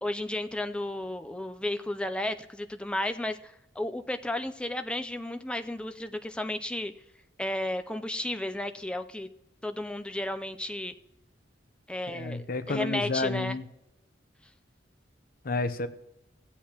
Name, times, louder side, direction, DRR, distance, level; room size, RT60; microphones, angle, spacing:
voice 1, 0.0-6.9 7.4-9.3 9.6-10.9 11.9-13.6, left 1 dB, 5° left, 8 dB, 0.5 m, -33 dB
voice 2, 12.1-13.6 15.4-15.9, left 3 dB, 50° left, 10 dB, 0.7 m, -30 dB
15.5 x 8.4 x 2.9 m, 0.86 s
head